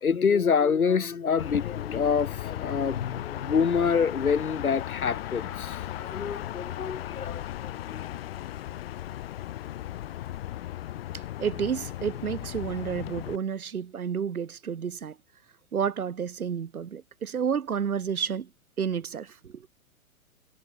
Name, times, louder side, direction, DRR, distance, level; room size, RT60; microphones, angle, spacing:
voice 1, 0.0-8.1, left 6 dB, 80° left, 1.3 m, -27 dB
sound 1, 1.4-13.4, left 13 dB, 45° left, 0.6 m, -36 dB
voice 2, 11.4-15.2 15.7-18.5 18.8-19.7, right 7 dB, 90° right, 0.7 m, -30 dB
figure-of-eight pair, 115°, 42 cm